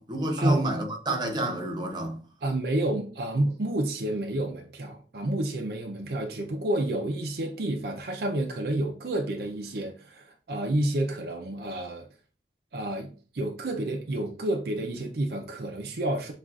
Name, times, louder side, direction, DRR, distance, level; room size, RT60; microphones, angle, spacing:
voice 1, 0.0-2.2, right 1 dB, 25° right, 0.8 m, -29 dB
voice 2, 2.4-12.1 12.7-16.3, right 1 dB, 60° right, 0.6 m, -29 dB
7.2 x 2.4 x 2.4 m
head